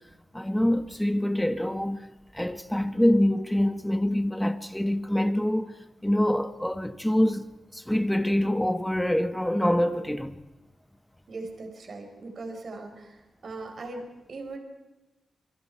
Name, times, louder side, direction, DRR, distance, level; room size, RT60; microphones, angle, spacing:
voice 1, 0.3-2.0 2.3-5.8 6.0-7.4 7.7-10.4, left 1 dB, 5° left, 1.5 m, -25 dB
voice 2, 11.3-14.0 14.3-14.6, right 3 dB, 60° right, 4.9 m, -39 dB
27.5 x 24.5 x 4.8 m
cardioid pair, 90°, 0 cm